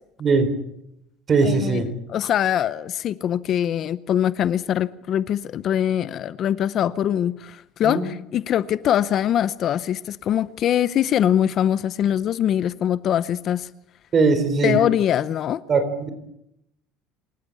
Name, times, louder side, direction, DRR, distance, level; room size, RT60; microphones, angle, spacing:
voice 1, 0.2-0.5 1.3-1.9 7.8-8.0 14.1-14.8 15.7-16.1, right 4 dB, 30° right, 3.9 m, -20 dB
voice 2, 1.4-1.8 2.1-13.7 14.6-15.6, left 10 dB, 45° left, 0.7 m, -23 dB
27.0 x 14.5 x 8.5 m
cardioid pair, 135°, 0 cm